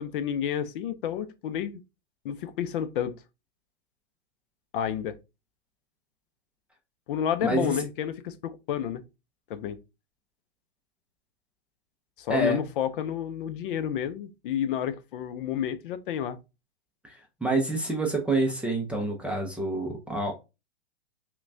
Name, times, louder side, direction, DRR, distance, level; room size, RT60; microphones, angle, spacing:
voice 1, 0.0-1.8 2.2-3.2 4.7-5.2 7.1-9.0 9.5-9.8 12.2-16.4, left 9 dB, 50° left, 0.5 m, -30 dB
voice 2, 7.4-7.8 12.3-12.6 17.0-20.3, right 2 dB, 5° right, 0.4 m, -27 dB
5.7 x 2.2 x 2.5 m
hypercardioid pair, 130°, 34 cm